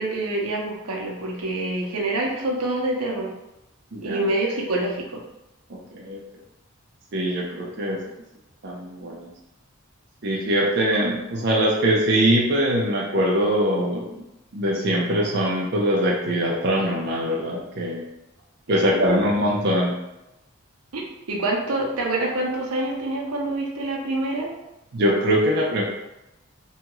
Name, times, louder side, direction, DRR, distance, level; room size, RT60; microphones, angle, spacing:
voice 1, 0.0-3.3 4.0-5.2 18.7-19.3 20.9-24.5, right 2 dB, 90° right, -1 dB, 0.7 m, -26 dB
voice 2, 3.9-4.2 5.9-6.2 7.1-8.0 8.6-9.3 10.2-14.2 14.5-18.0 18.7-19.9 24.9-25.8, equal, 50° right, -3 dB, 0.4 m, -22 dB
2.7 x 2.3 x 2.9 m, 0.94 s
head